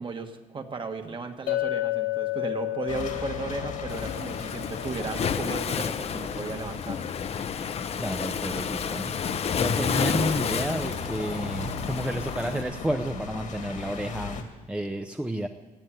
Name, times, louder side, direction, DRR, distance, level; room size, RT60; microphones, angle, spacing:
voice 1, 0.0-7.1, right 4 dB, 35° right, 5 dB, 1.6 m, -35 dB
Chink clink, 1.5-5.7, left 18 dB, 90° left, 1.5 m, -32 dB
sound 1, 2.9-14.4, left 5 dB, 60° left, 2.1 m, -38 dB
Waves surf, 3.9-12.6, left 7 dB, 45° left, 0.7 m, -30 dB
voice 2, 8.0-9.1 9.6-15.5, right 1 dB, 5° right, 6 dB, 0.7 m, -31 dB
16.0 x 9.1 x 9.2 m, 1.2 s
cardioid pair, 105°, 15 cm